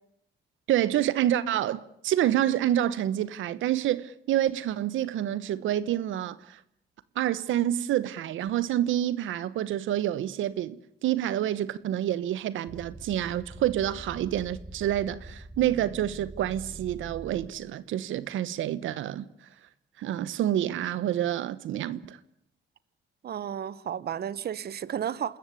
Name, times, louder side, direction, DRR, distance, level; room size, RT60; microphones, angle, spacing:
voice 1, 0.7-6.6 7.1-19.2 20.0-22.2, right 12 dB, 80° right, 1.1 m, -28 dB
sound 1, 12.6-17.9, right 2 dB, 10° right, 3.7 m, -44 dB
voice 2, 23.2-25.4, right 9 dB, 55° right, 1.0 m, -33 dB
27.5 x 14.0 x 9.9 m
cardioid pair, 90°, 20 cm